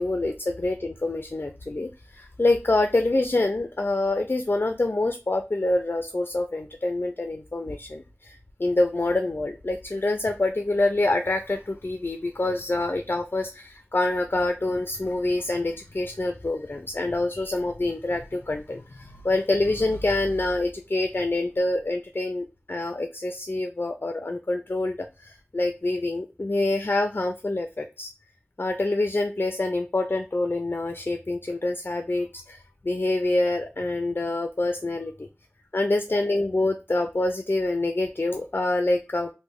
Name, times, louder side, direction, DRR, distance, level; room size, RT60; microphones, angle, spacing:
voice 1, 0.0-28.1 28.6-35.1 35.7-39.3, left 2 dB, 50° left, 6 dB, 0.4 m, -26 dB
3.1 x 2.1 x 3.6 m, 0.29 s
wide cardioid pair, 45°, 5 cm